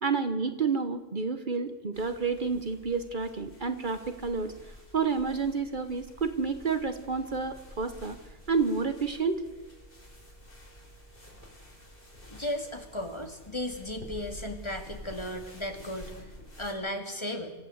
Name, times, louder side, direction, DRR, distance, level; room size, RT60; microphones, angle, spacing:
voice 1, 0.0-4.5 4.9-8.2 8.5-9.4, right 5 dB, 50° right, 9 dB, 1.3 m, -29 dB
sound 1, 1.9-16.7, equal, 60° left, 4.6 m, -49 dB
voice 2, 12.3-16.1 16.6-17.5, left 1 dB, 25° left, 4 dB, 2.5 m, -35 dB
25.5 x 15.0 x 8.0 m, 1.1 s
omnidirectional pair, 1.0 m